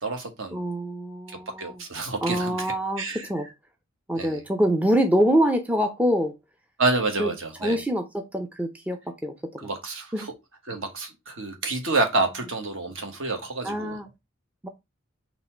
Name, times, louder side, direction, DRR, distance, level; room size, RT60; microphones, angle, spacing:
voice 1, 0.0-0.6 1.3-3.2 4.2-4.4 6.8-7.8 9.6-10.3 10.7-14.0, right 3 dB, 65° right, 1.3 m, -28 dB
voice 2, 0.5-1.8 2.2-3.5 4.1-6.4 7.2-7.3 7.6-9.7 10.1-10.3 13.6-14.1 14.6-14.7, equal, 5° right, 0.4 m, -25 dB
4.0 x 2.9 x 4.3 m
head